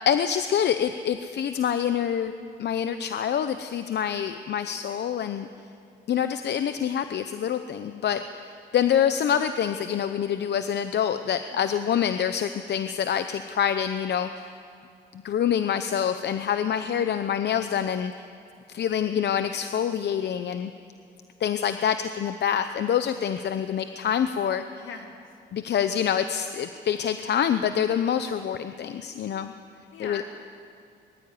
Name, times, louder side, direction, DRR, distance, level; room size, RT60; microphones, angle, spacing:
voice 1, 0.1-2.3 2.6-5.5 6.1-14.6 15.1-18.1 18.7-20.7 21.4-24.8 25.5-29.5 30.0-30.2, left 8 dB, 60° left, 10 dB, 0.8 m, -26 dB
voice 2, 11.5-11.9 19.1-19.5 24.8-25.4 29.9-30.2, left 7 dB, 75° left, 3 dB, 2.9 m, -42 dB
21.0 x 14.5 x 9.9 m, 2.4 s
cardioid pair, 90°, 20 cm